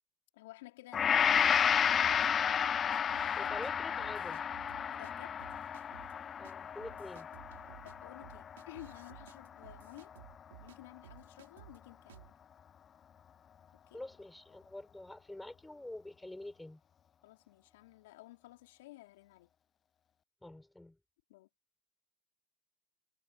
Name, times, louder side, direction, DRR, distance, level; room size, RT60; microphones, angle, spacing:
voice 1, 0.3-1.6 4.9-5.4 7.8-10.2 10.6-12.3 13.9-14.0 17.2-19.5 21.3-21.5, left 19 dB, 75° left, 3.9 m, -53 dB
Gong, 0.9-9.2 9.7-9.9, left 8 dB, 30° left, 0.4 m, -32 dB
sound 1, 1.2-2.3 2.9-3.7 4.0-5.1 5.4-6.1 6.4-6.5 6.8-10.8 11.0-11.8 12.1-12.3, right 13 dB, 85° right, 2.4 m, -56 dB
voice 2, 3.3-4.4 6.4-7.3 13.9-16.8 20.4-21.0, left 1 dB, 5° left, 5.1 m, -46 dB
hypercardioid pair, 95°, 0 cm